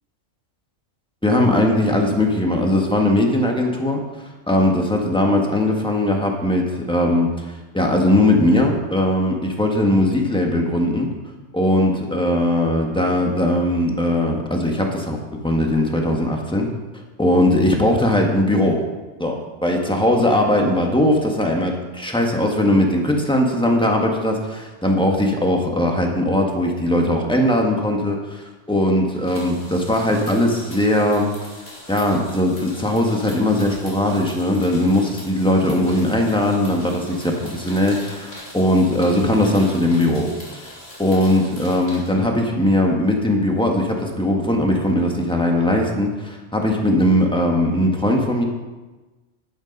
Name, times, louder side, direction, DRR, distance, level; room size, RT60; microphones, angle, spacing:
voice 1, 1.2-4.0 4.5-7.3 7.7-11.1 11.5-16.7 17.2-18.8 19.2-31.3 31.9-40.7 41.0-48.4, left 1 dB, 5° left, 1 dB, 1.5 m, -19 dB
sound 1, 29.2-42.1, left 1 dB, 55° left, 3.6 m, -41 dB
11.5 x 8.7 x 5.4 m, 1.2 s
omnidirectional pair, 1.3 m